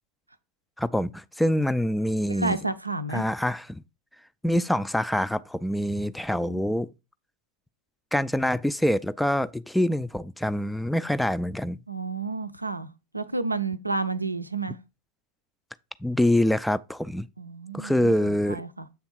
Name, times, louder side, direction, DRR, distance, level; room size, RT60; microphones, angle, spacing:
voice 1, 0.8-2.6 3.1-3.8 4.4-6.9 8.1-11.8 16.0-17.3 17.7-18.6, left 1 dB, 5° left, 0.3 m, -25 dB
voice 2, 2.3-3.2 6.4-6.7 11.9-14.8 17.4-18.9, right 3 dB, 85° right, 0.5 m, -31 dB
7.6 x 3.5 x 4.4 m
figure-of-eight pair, 90°, 0 cm